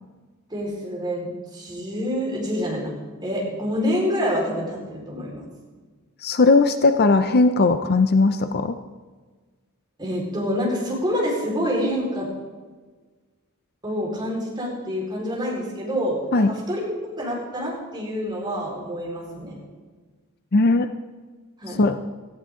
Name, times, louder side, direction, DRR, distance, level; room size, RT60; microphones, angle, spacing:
voice 1, 0.5-2.9 3.2-5.5 10.0-12.3 13.8-16.9 17.2-19.6 21.6-21.9, equal, 20° right, -3 dB, 4.5 m, -27 dB
voice 2, 6.2-8.8 16.3-16.5 20.5-20.9 21.8-22.0, left 3 dB, 45° left, 9 dB, 0.6 m, -18 dB
17.0 x 14.5 x 3.8 m, 1.4 s
head